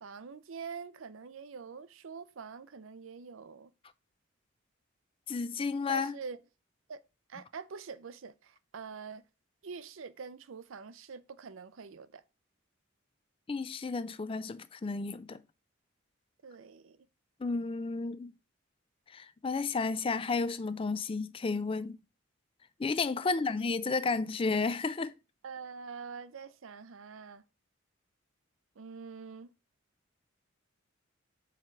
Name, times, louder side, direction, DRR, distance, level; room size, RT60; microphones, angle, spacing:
voice 1, 0.0-3.7 5.9-6.4 6.9-7.0 7.3-9.2 9.6-12.2 16.4-17.0 23.2-23.5 25.4-27.4 28.8-29.5, right 5 dB, 75° right, 0.5 m, -45 dB
voice 2, 5.3-6.1 13.5-15.4 17.4-18.3 19.1-22.0 22.8-25.1, left 4 dB, 25° left, 0.3 m, -32 dB
4.8 x 4.6 x 5.7 m
head